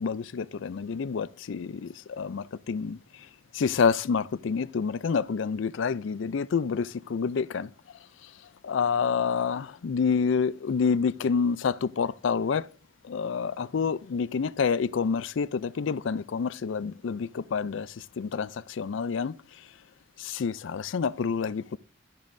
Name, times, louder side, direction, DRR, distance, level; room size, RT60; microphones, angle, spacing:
voice 1, 0.0-3.0 3.5-7.7 8.6-12.7 13.0-19.3 20.2-21.8, left 5 dB, 70° left, 0.4 m, -28 dB
12.5 x 12.5 x 2.6 m
head